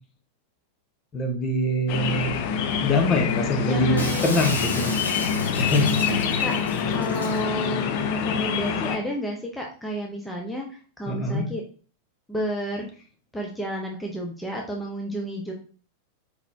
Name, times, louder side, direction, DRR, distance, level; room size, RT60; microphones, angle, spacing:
voice 1, 1.1-2.4 2.8-5.0 5.6-6.0 11.1-11.5, left 1 dB, 25° left, 3 dB, 1.0 m, -24 dB
sound 1, 1.9-9.0, left 7 dB, 45° left, 0.5 m, -26 dB
voice 2, 3.4-4.4 4.8-5.1 6.0-6.6 6.9-11.6 12.3-12.9 13.3-15.5, right 1 dB, 5° left, -1 dB, 0.8 m, -31 dB
Shatter, 4.0-7.4, left 2 dB, 75° left, 1.0 m, -34 dB
4.6 x 4.0 x 2.7 m, 0.39 s
figure-of-eight pair, 90°, 0 cm